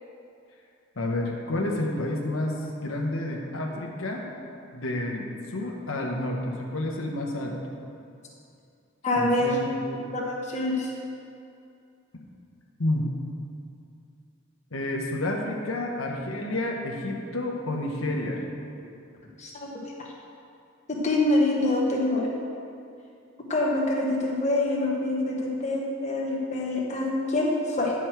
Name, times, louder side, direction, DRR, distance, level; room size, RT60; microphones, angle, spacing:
voice 1, 1.0-2.6 2.8-4.3 4.7-7.6 9.2-9.8 12.8-13.1 14.7-18.4, left 1 dB, 85° left, 0 dB, 1.0 m, -30 dB
voice 2, 9.0-9.5 10.1-10.9 19.4-19.7 21.0-22.3 23.5-27.9, left 2 dB, 35° left, -3 dB, 1.2 m, -25 dB
10.0 x 6.1 x 4.5 m, 2.5 s
head